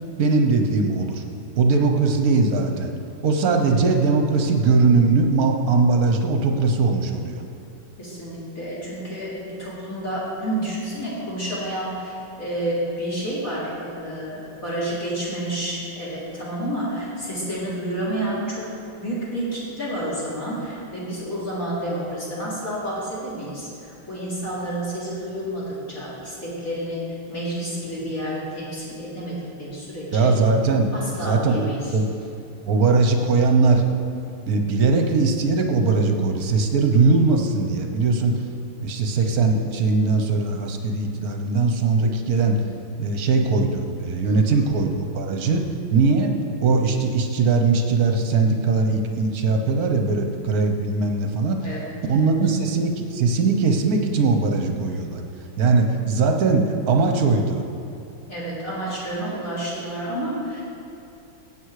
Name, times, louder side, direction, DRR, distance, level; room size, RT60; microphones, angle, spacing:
voice 1, 0.2-1.2 1.6-2.9 3.2-7.4 30.1-30.9 31.2-32.1 32.7-33.8 34.5-38.4 38.8-42.6 43.0-45.6 45.9-51.7 52.1-55.2 55.6-57.6, right 4 dB, 50° right, 4 dB, 1.3 m, -20 dB
voice 2, 1.7-2.0 8.0-18.7 19.0-27.0 27.3-30.3 30.9-32.0 44.2-44.7 45.4-45.7 51.6-52.3 58.3-60.6, right 1 dB, 40° left, -8 dB, 3.7 m, -30 dB
17.0 x 8.0 x 4.9 m, 2.7 s
omnidirectional pair, 2.4 m